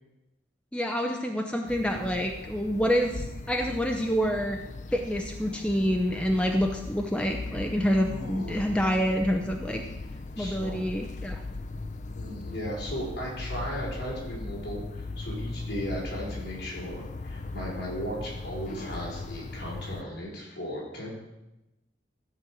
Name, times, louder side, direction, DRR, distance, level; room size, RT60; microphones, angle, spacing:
voice 1, 0.7-4.6 4.9-9.8 10.4-11.4, equal, 5° left, 2 dB, 0.7 m, -27 dB
sound 1, 1.7-20.0, left 3 dB, 40° left, 0.5 m, -39 dB
voice 2, 8.1-8.7 10.4-10.8 12.1-21.1, equal, 65° left, -5 dB, 5.2 m, -36 dB
13.5 x 5.5 x 7.7 m, 0.98 s
head